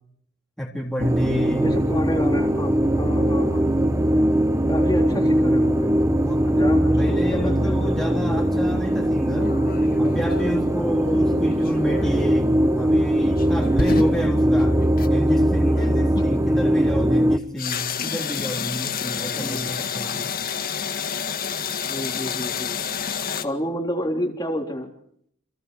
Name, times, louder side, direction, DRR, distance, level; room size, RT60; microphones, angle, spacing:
voice 1, 0.6-1.7 6.2-6.7 7.0-9.6 10.0-14.8 15.1-20.4, equal, ahead, -1 dB, 3.9 m, -30 dB
sound 1, 1.0-17.4, equal, 15° right, 1.0 m, -20 dB
voice 2, 1.6-3.7 4.7-5.9 6.4-7.9 11.1-11.5 16.2-16.3 19.4-19.7 21.8-22.8 23.4-24.9, equal, 20° left, 0 dB, 3.6 m, -29 dB
sound 2, 9.3-10.7 11.5-12.5 13.2-15.2 15.7-16.0 17.6-23.4, left 6 dB, 45° left, 2.0 m, -30 dB
30.0 x 27.5 x 4.7 m, 0.68 s
head